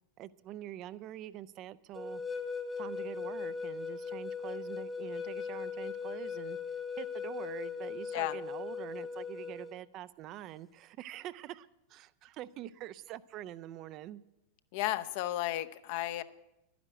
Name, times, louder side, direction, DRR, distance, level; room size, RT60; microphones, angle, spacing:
voice 1, 0.2-2.2 2.8-6.6 7.0-14.2, right 13 dB, 35° right, 15 dB, 0.4 m, -45 dB
sound 1, 1.9-9.7, left 5 dB, 15° left, 1.0 m, -39 dB
voice 2, 14.7-16.2, left 15 dB, 50° left, 12 dB, 0.6 m, -33 dB
11.5 x 10.0 x 8.0 m, 0.89 s
figure-of-eight pair, 90°, 0 cm